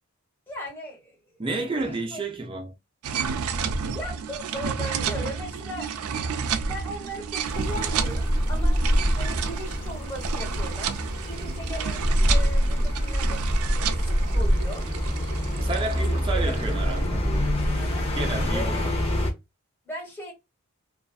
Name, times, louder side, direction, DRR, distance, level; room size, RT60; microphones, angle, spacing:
voice 1, 0.5-1.4 1.8-2.2 3.9-6.2 6.6-8.8 9.1-10.9 11.3-13.4 13.9-14.9 16.1-17.0 17.8-18.1 18.5-18.9 19.8-20.3, equal, 10° left, 1.3 m, -38 dB
voice 2, 1.4-2.8 15.6-17.3 18.1-18.9, right 3 dB, 25° right, 0.5 m, -31 dB
sound 1, 3.0-17.0, right 6 dB, 80° right, 0.4 m, -31 dB
sound 2, 7.4-19.3, equal, 25° left, 0.6 m, -25 dB
2.5 x 2.3 x 2.3 m
head